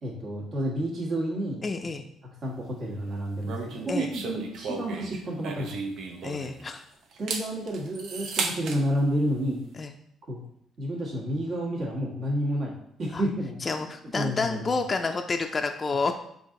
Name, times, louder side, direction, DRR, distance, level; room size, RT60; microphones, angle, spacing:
voice 1, 0.0-1.6 2.4-5.7 7.2-9.6 10.2-10.4 10.8-12.7 13.0-13.8 14.1-14.7, equal, 55° right, -2 dB, 1.3 m, -30 dB
voice 2, 1.6-2.0 3.9-4.1 6.2-6.8 9.8-9.9 13.1-13.2 13.6-16.1, left 4 dB, 35° left, 5 dB, 0.4 m, -29 dB
sound 1, 3.4-6.7 7.1-8.8, right 4 dB, 75° right, 0.6 m, -34 dB
4.5 x 2.7 x 3.7 m, 0.71 s
supercardioid pair, 70°, 0 cm